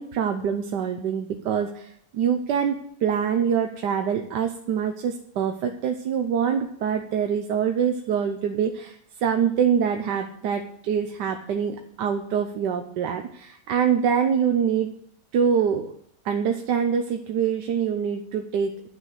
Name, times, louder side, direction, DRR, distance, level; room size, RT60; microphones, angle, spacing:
voice 1, 0.0-14.9 15.3-15.9 16.2-18.8, right 7 dB, 75° right, 5 dB, 1.4 m, -25 dB
11.0 x 6.6 x 8.0 m, 0.70 s
omnidirectional pair, 1.9 m